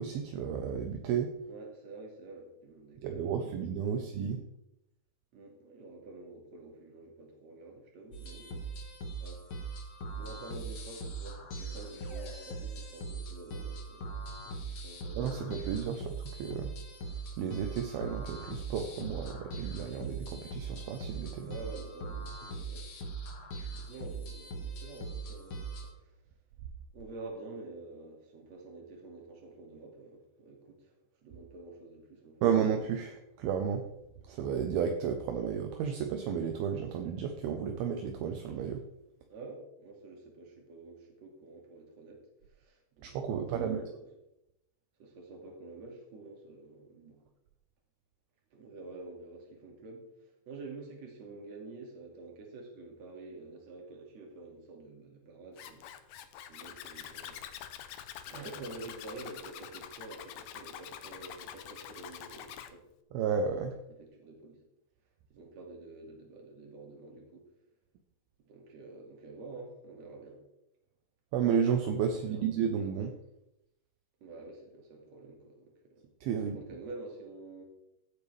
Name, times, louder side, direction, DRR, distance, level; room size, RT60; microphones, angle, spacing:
voice 1, 0.0-1.3 3.0-4.4 15.2-16.1 16.4-16.7 17.4-21.5 32.4-33.8 34.3-38.8 43.0-43.8 63.1-63.7 71.3-73.1 76.2-76.6, right 7 dB, 75° right, 4 dB, 2.6 m, -32 dB
voice 2, 1.5-4.3 5.3-8.7 9.2-9.7 10.2-14.1 14.6-15.9 21.4-22.9 23.7-26.1 26.9-30.9 31.2-32.7 39.3-42.2 42.5-44.1 45.0-47.2 48.5-57.4 58.2-62.8 63.9-64.6 65.3-67.5 68.4-70.4 72.1-72.5 74.2-76.1 76.3-77.6, right 3 dB, 45° right, 1 dB, 3.1 m, -48 dB
sound 1, 8.1-25.9, right 3 dB, 50° left, 1.6 m, -41 dB
Zipper (clothing), 55.6-62.7, left 10 dB, 80° left, 1.9 m, -46 dB
16.0 x 8.9 x 3.4 m, 0.85 s
omnidirectional pair, 4.8 m